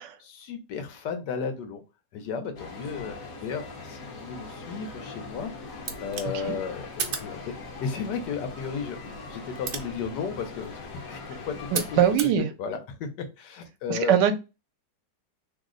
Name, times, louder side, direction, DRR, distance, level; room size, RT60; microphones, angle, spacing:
voice 1, 0.2-1.8 2.1-7.5 7.8-11.8 12.2-12.3 12.6-13.1 13.4-14.2, left 6 dB, 80° left, 1.3 m, -34 dB
sound 1, 2.6-12.2, left 3 dB, 55° left, 1.1 m, -41 dB
sound 2, 5.3-12.4, right 6 dB, 65° right, 0.9 m, -39 dB
voice 2, 11.7-12.5 13.9-14.3, right 9 dB, 80° right, 1.2 m, -22 dB
3.2 x 2.0 x 3.7 m
omnidirectional pair, 1.9 m